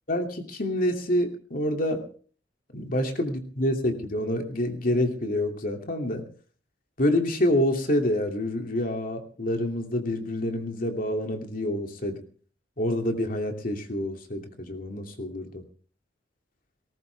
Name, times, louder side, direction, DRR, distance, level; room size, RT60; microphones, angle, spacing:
voice 1, 0.1-2.0 2.7-6.3 7.0-12.2 12.8-15.6, left 1 dB, 50° left, 4 dB, 2.8 m, -27 dB
19.0 x 18.0 x 3.5 m, 0.43 s
head